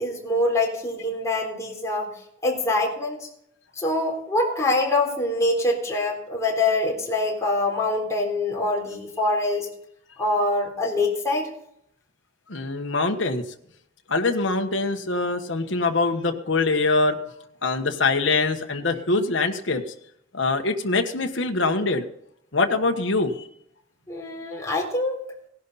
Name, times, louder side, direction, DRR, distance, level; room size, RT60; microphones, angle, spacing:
voice 1, 0.0-2.1 2.4-3.3 3.8-9.7 10.2-11.5 24.1-25.2, left 2 dB, 15° left, -1 dB, 3.9 m, -24 dB
voice 2, 12.5-13.4 14.1-17.2 17.6-19.8 20.3-22.0 22.5-23.5, left 3 dB, 65° left, 4 dB, 1.4 m, -23 dB
18.0 x 11.5 x 4.2 m, 0.71 s
head